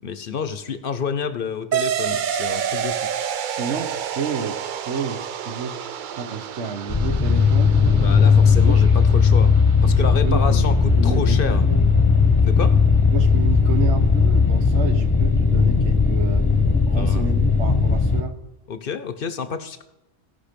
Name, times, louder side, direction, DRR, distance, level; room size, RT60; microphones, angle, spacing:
voice 1, 0.0-3.1 7.9-9.5 9.8-11.6 12.4-12.8 16.9-17.2 18.7-19.8, left 6 dB, 55° left, 11 dB, 0.9 m, -29 dB
sound 1, 1.7-10.7, right 9 dB, 60° right, 0.6 m, -29 dB
voice 2, 3.4-7.7 8.4-8.9 9.8-11.9 13.0-16.5 16.9-18.4, right 5 dB, 75° right, 9 dB, 1.3 m, -30 dB
sound 2, 6.9-18.2, left 5 dB, 20° left, 0.9 m, -17 dB
16.5 x 5.5 x 5.2 m, 0.94 s
omnidirectional pair, 1.2 m